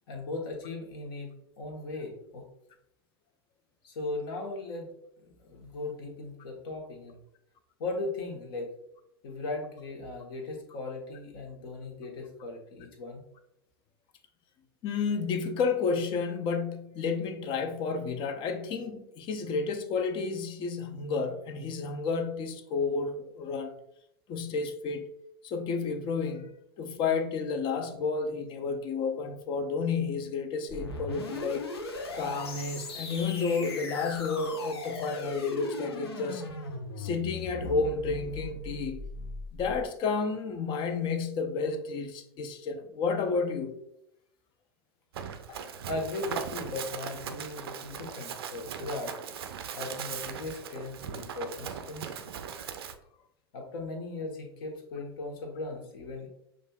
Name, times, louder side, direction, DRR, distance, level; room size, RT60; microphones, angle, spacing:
voice 1, 0.1-2.5 3.8-4.9 5.2-7.2 7.8-8.7 9.2-13.2 45.8-49.2 49.7-52.3 53.5-56.3, left 2 dB, 60° left, 1.1 m, -38 dB
voice 2, 14.8-23.7 24.3-25.1 25.4-31.7 32.1-36.4 37.0-39.0 39.5-43.7 45.5-45.6, left 4 dB, 40° left, 0.6 m, -31 dB
sound 1, 30.7-39.9, left 2 dB, 80° left, 0.7 m, -38 dB
Run, 45.1-52.9, right 8 dB, 70° right, 0.4 m, -39 dB
6.4 x 2.4 x 2.2 m
figure-of-eight pair, 90°, 13 cm